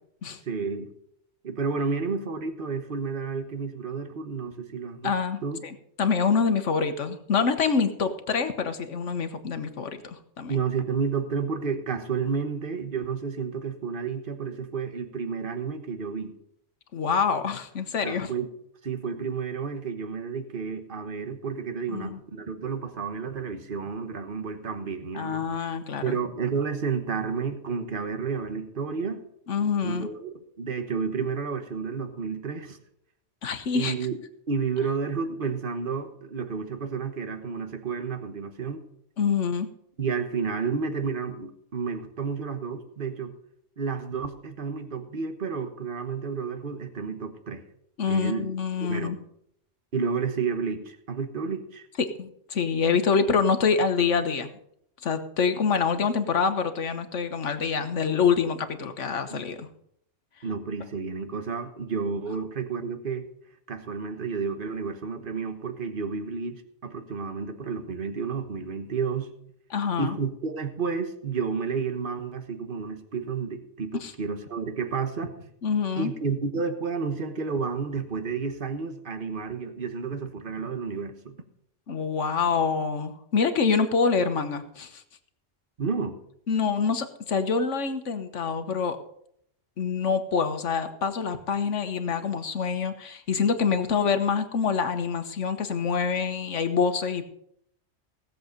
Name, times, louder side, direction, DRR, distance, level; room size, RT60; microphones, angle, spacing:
voice 1, 0.5-0.9 1.4-5.1 5.4-5.6 10.5-16.3 18.0-18.5 18.8-25.5 26.0-29.2 29.8-32.8 33.7-34.2 34.5-38.8 40.0-43.3 43.8-47.6 48.1-48.5 48.8-49.1 49.9-51.9 59.3-59.5 60.4-63.3 63.7-69.3 70.0-75.5 76.0-81.4 85.8-86.2, right 5 dB, 45° right, 8 dB, 1.4 m, -31 dB
voice 2, 5.0-10.6 16.9-18.3 21.9-22.2 25.1-26.2 29.5-30.1 33.4-33.9 39.2-39.7 48.0-49.2 52.0-54.5 55.0-59.7 69.7-70.2 74.0-74.1 75.6-76.1 81.9-85.0 86.5-89.0 89.8-97.2, left 5 dB, 75° left, 9 dB, 1.5 m, -26 dB
17.0 x 7.7 x 5.2 m, 0.71 s
omnidirectional pair, 1.3 m